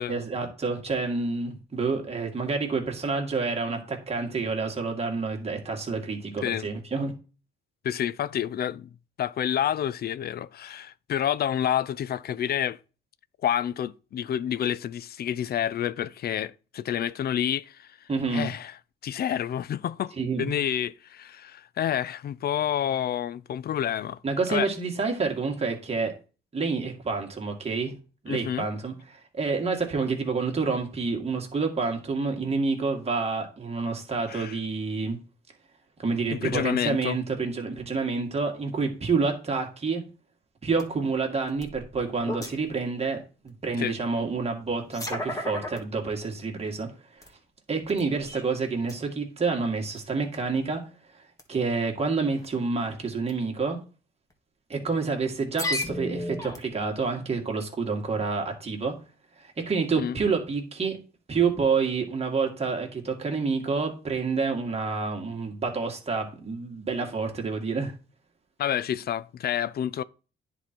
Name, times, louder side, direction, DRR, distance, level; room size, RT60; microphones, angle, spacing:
voice 1, 0.1-7.1 18.1-18.5 20.2-20.5 24.2-26.1 26.5-27.9 28.2-35.2 36.0-40.0 40.6-47.2 47.7-50.8 51.1-53.8 54.7-58.9 59.4-61.0 61.3-67.9, right 4 dB, 30° right, 2.0 m, -28 dB
voice 2, 7.8-8.9 9.2-12.8 13.4-18.7 19.0-24.2 24.5-24.7 28.3-28.7 34.3-34.6 36.3-37.2 43.8-44.0 60.0-60.2 68.6-70.0, left 10 dB, 55° left, 0.4 m, -29 dB
sound 1, 40.8-40.9 41.5-42.8 43.5-43.6 44.6-45.8 46.4-46.5 47.2-47.3 47.8-48.5 48.8-49.0 50.0-50.1 50.3-50.6 51.4-51.6 52.4-52.7 53.2-53.3 54.3-54.4 55.4-56.9, left 1 dB, 15° left, 1.7 m, -34 dB
9.9 x 3.9 x 4.5 m
cardioid pair, 90°, 20 cm